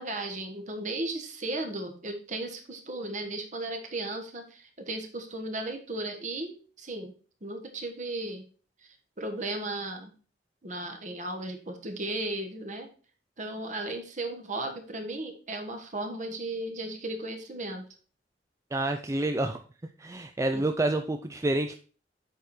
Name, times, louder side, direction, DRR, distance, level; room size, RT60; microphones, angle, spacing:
voice 1, 0.0-7.1 7.4-8.5 9.2-10.1 10.6-12.9 13.4-17.8 20.5-20.6, right 2 dB, 45° right, 5 dB, 1.4 m, -35 dB
voice 2, 18.7-19.6 20.0-21.8, right 2 dB, 15° right, 6 dB, 0.4 m, -28 dB
8.0 x 4.8 x 4.3 m, 0.39 s
head